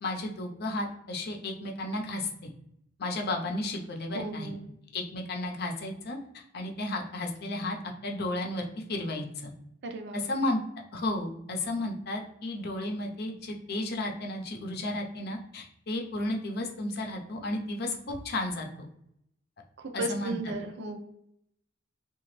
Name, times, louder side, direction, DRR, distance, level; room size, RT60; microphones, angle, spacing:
voice 1, 0.0-2.5 3.0-4.5 4.9-7.8 8.0-9.5 10.1-10.6 10.9-18.7 19.9-20.4, left 2 dB, 55° left, 2 dB, 0.6 m, -33 dB
voice 2, 4.1-4.6 9.8-10.2 19.8-21.0, right 2 dB, 60° right, 4 dB, 0.5 m, -35 dB
2.8 x 2.3 x 3.0 m, 0.76 s
head